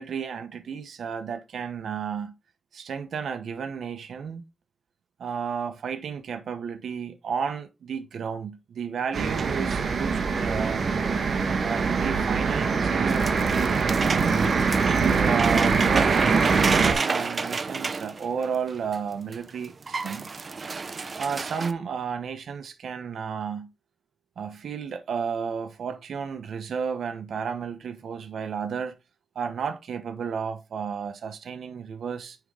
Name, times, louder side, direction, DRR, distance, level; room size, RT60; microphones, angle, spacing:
voice 1, 0.0-2.3 2.7-4.4 5.2-10.8 11.6-14.4 15.0-20.3 21.2-23.7 24.4-28.9 29.3-32.4, right 6 dB, 80° right, 1.0 m, -32 dB
sound 1, 9.1-16.9, right 5 dB, 65° right, 1.3 m, -23 dB
sound 2, 13.1-19.0 19.3-19.4 19.6-21.7, right 4 dB, 45° right, 0.8 m, -31 dB
9.2 x 3.7 x 3.3 m
cardioid pair, 85°, 0 cm